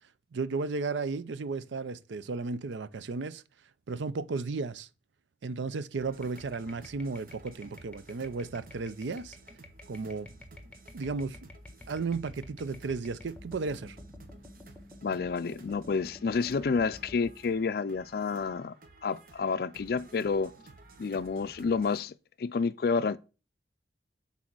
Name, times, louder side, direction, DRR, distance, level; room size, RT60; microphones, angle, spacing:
voice 1, 0.3-3.4 3.9-4.9 5.4-9.4 9.9-10.3 10.9-11.4 11.9-14.0, right 4 dB, 85° right, 0.5 m, -34 dB
sound 1, 6.0-22.0, right 2 dB, 50° right, 1.0 m, -54 dB
sound 2, 6.2-17.3, left 2 dB, 5° left, 1.1 m, -51 dB
voice 2, 15.0-18.7 19.0-20.5 21.0-22.1 22.4-23.2, left 5 dB, 55° left, 0.4 m, -29 dB
6.3 x 4.2 x 6.0 m
head